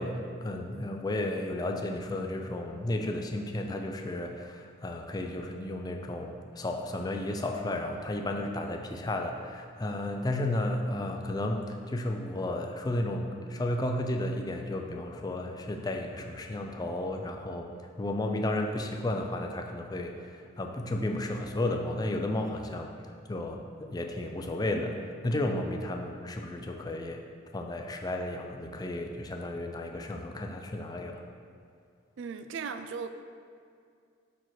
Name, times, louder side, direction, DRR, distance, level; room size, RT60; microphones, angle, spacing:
voice 1, 0.0-17.7 18.0-22.9 23.3-27.2 27.5-31.2, left 1 dB, 20° left, 3 dB, 0.4 m, -33 dB
voice 2, 32.2-33.1, right 5 dB, 65° right, 9 dB, 0.3 m, -37 dB
4.7 x 4.5 x 5.9 m, 2.3 s
head